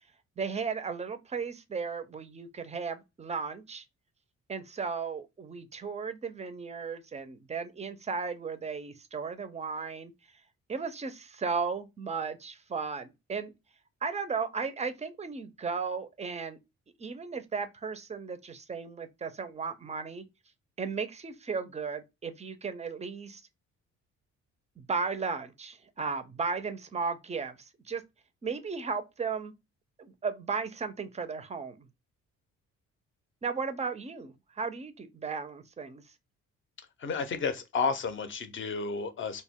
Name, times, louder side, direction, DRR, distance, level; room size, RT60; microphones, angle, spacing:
voice 1, 0.4-3.8 4.5-10.1 10.7-13.5 14.0-16.6 17.0-20.2 20.8-23.4 24.8-28.0 28.4-29.5 30.0-31.9 33.4-36.0, right 5 dB, 25° right, 0.4 m, -35 dB
voice 2, 37.0-39.4, left 5 dB, 40° left, 0.6 m, -31 dB
2.1 x 2.1 x 3.5 m
cardioid pair, 90°, 30 cm